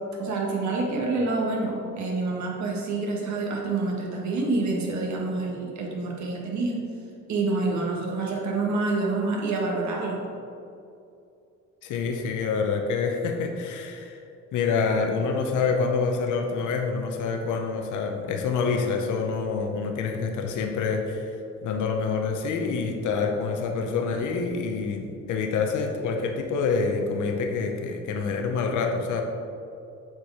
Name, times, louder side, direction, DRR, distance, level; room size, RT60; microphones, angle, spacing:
voice 1, 0.2-6.8 7.3-10.2, right 3 dB, 70° right, -2 dB, 1.7 m, -27 dB
voice 2, 11.8-14.2 14.5-21.4 21.6-29.2, left 5 dB, 80° left, 3 dB, 0.8 m, -27 dB
7.4 x 4.6 x 4.8 m, 2.6 s
cardioid pair, 90°, 30 cm